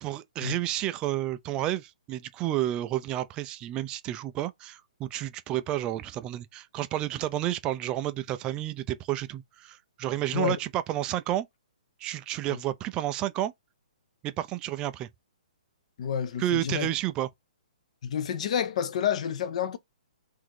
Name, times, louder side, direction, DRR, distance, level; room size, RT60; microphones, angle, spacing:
voice 1, 0.0-11.5 12.0-13.5 14.2-15.1 16.4-17.3, right 13 dB, 20° right, 0.4 m, -31 dB
voice 2, 16.0-16.9 18.0-19.8, left 8 dB, 50° left, 0.7 m, -29 dB
3.9 x 2.6 x 4.7 m
hypercardioid pair, 155°, 4 cm